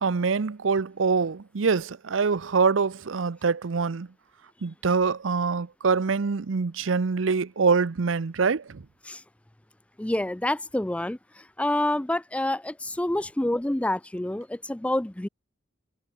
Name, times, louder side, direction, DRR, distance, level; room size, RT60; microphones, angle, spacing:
voice 1, 0.0-4.1 4.6-8.8, right 5 dB, 90° right, 0.6 m, -25 dB
voice 2, 10.0-15.3, left 1 dB, 5° left, 0.4 m, -28 dB
head